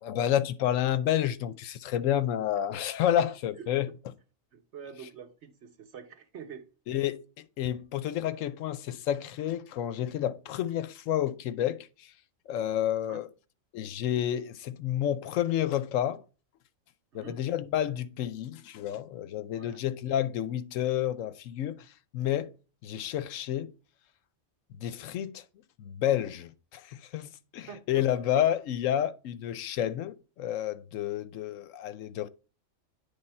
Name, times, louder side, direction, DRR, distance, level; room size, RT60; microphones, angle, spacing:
voice 1, 0.0-3.9 6.9-12.1 12.5-13.3 13.7-16.2 17.1-22.5 22.8-23.7 24.8-25.4 25.8-32.3, left 11 dB, 80° left, 1.0 m, -30 dB
voice 2, 4.5-6.7 13.1-13.3 17.1-17.4 19.5-19.8 27.7-28.1, right 7 dB, 60° right, 1.2 m, -46 dB
9.8 x 3.4 x 4.2 m
omnidirectional pair, 1.3 m